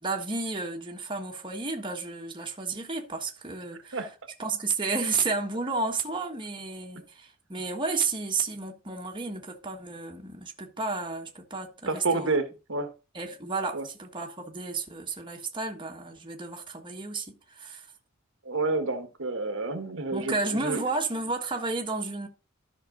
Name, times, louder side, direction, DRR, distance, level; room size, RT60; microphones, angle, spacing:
voice 1, 0.0-4.0 4.4-12.4 13.1-17.9 20.1-22.3, right 3 dB, 25° right, 1.5 m, -32 dB
voice 2, 11.9-12.9 13.7-13.8 18.4-20.8, right 3 dB, 65° right, 1.4 m, -29 dB
12.5 x 6.0 x 3.9 m
head